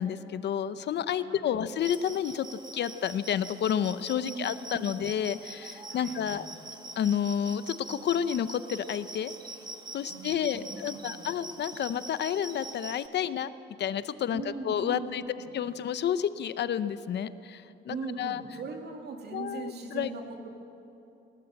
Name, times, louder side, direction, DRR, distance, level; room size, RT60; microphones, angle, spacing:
voice 1, 0.0-6.5 7.0-9.3 9.9-13.5 13.8-18.4 19.3-20.1, left 9 dB, 60° left, 14 dB, 0.7 m, -30 dB
voice 2, 1.2-1.6 4.2-5.0 5.9-6.5 10.1-11.4 14.3-15.5 17.9-20.5, right 4 dB, 55° right, 3 dB, 2.7 m, -40 dB
sound 1, 1.8-13.1, right 1 dB, 20° right, 1.2 m, -44 dB
20.0 x 19.5 x 7.8 m, 2.8 s
cardioid pair, 145°, 20 cm